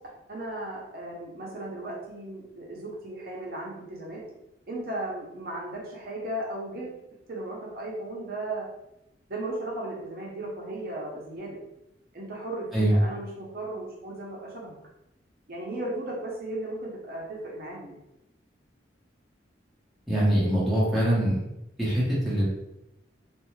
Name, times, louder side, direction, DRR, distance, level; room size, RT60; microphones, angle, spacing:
voice 1, 0.3-4.2 4.7-7.0 7.3-8.7 9.3-11.6 12.1-14.7 15.5-18.0, right 1 dB, 55° right, -4 dB, 0.6 m, -36 dB
voice 2, 20.1-21.4 21.8-22.4, right 1 dB, ahead, -9 dB, 0.9 m, -23 dB
2.5 x 2.3 x 3.1 m, 0.87 s
head